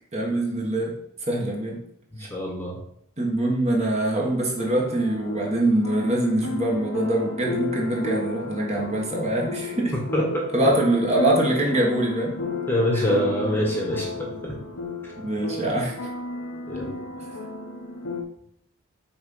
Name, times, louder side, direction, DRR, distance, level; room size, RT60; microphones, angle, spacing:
voice 1, 0.1-1.8 2.2-2.3 3.2-9.9 10.5-12.3 12.9-13.0 15.2-16.0 17.2-17.3, right 1 dB, 30° right, -1 dB, 1.4 m, -24 dB
voice 2, 2.1-2.8 9.9-10.5 12.7-14.5 16.7-17.0, equal, 10° left, -1 dB, 1.2 m, -25 dB
sound 1, 4.6-18.2, left 2 dB, 90° left, 1.1 m, -33 dB
6.1 x 4.4 x 5.4 m, 0.72 s
head